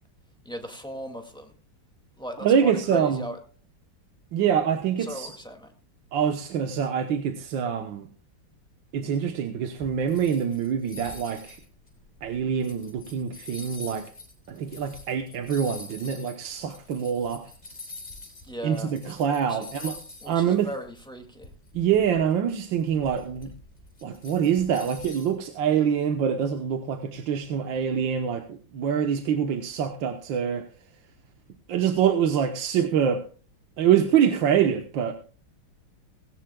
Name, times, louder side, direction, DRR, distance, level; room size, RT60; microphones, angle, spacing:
voice 1, 0.4-1.5 2.2-3.4 5.0-5.7 18.4-18.9 19.5-19.7 20.2-21.5, equal, ahead, 4 dB, 1.9 m, -37 dB
voice 2, 2.4-3.3 4.3-5.3 6.1-8.1 8.9-11.6 12.2-14.1 14.5-17.5 18.6-20.0 20.3-20.7 21.7-23.5 24.0-30.7 31.7-33.2 33.8-35.1, right 8 dB, 70° right, 6 dB, 1.7 m, -25 dB
sound 1, 9.8-18.5 18.7-20.5 20.7-20.9 21.4-25.4, left 3 dB, 25° left, 3.5 m, -44 dB
18.5 x 16.5 x 2.2 m, 0.39 s
omnidirectional pair, 2.2 m